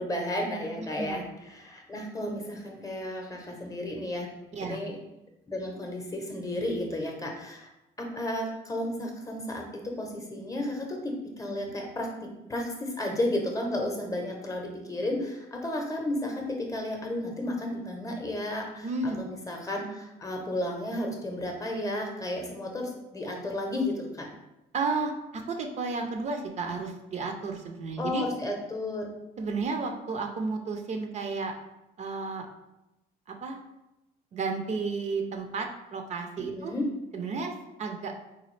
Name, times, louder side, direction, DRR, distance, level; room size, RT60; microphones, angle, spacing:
voice 1, 0.0-4.3 4.6-4.9 5.5-7.7 8.0-12.1 12.5-18.9 19.2-24.3 28.0-29.1 36.5-36.9, left 1 dB, 20° left, 1 dB, 0.7 m, -33 dB
voice 2, 0.8-1.2 4.5-4.8 18.8-19.2 24.7-28.3 29.4-31.5 32.0-32.5 33.3-33.6 34.3-36.7 37.1-37.5 37.8-38.1, right 4 dB, 45° right, 4 dB, 0.4 m, -32 dB
4.0 x 2.3 x 3.2 m, 0.93 s
cardioid pair, 110°, 17 cm